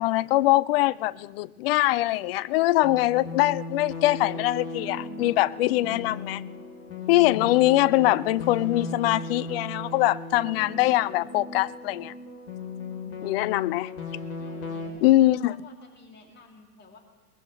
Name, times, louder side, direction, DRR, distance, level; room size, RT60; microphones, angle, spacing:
voice 1, 0.0-6.4 7.1-12.1 13.2-13.9 15.0-15.5, left 17 dB, 40° left, 0.5 m, -23 dB
sound 1, 2.8-14.9, left 3 dB, 60° left, 3.6 m, -37 dB
voice 2, 12.8-13.5 14.4-15.1 15.5-17.0, left 4 dB, 25° left, 2.7 m, -51 dB
22.5 x 20.0 x 3.2 m
figure-of-eight pair, 100°, 45 cm